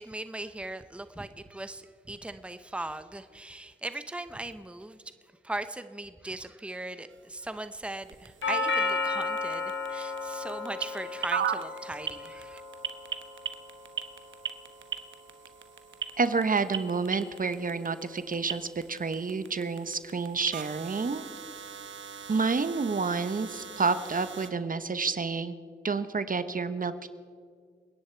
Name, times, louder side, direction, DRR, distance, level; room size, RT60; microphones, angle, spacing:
voice 1, 0.0-5.0 5.4-12.6, right 2 dB, 5° right, 11 dB, 0.9 m, -39 dB
sound 1, 7.1-24.5, right 7 dB, 80° right, 1.2 m, -40 dB
Doorbell, 8.4-16.5, left 3 dB, 85° left, 1.8 m, -35 dB
voice 2, 16.2-21.3 22.3-25.5 25.8-27.1, right 4 dB, 45° right, 12 dB, 1.1 m, -29 dB
29.5 x 10.5 x 4.6 m, 2.1 s
cardioid pair, 55°, 19 cm